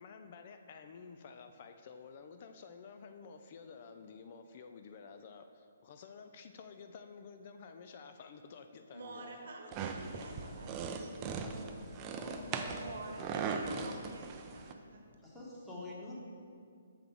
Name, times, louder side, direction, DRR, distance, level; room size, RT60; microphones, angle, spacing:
voice 1, 0.0-9.4, left 5 dB, 45° left, 7 dB, 0.4 m, -51 dB
voice 2, 8.9-10.8 12.3-12.5 12.8-15.0, right 2 dB, 60° right, 2 dB, 1.1 m, -48 dB
sound 1, 9.7-14.7, right 5 dB, 25° right, 0.4 m, -39 dB
voice 3, 11.2-13.4 15.2-16.1, left 1 dB, 5° left, -5 dB, 1.3 m, -47 dB
6.8 x 5.7 x 3.6 m, 2.3 s
figure-of-eight pair, 140°, 0 cm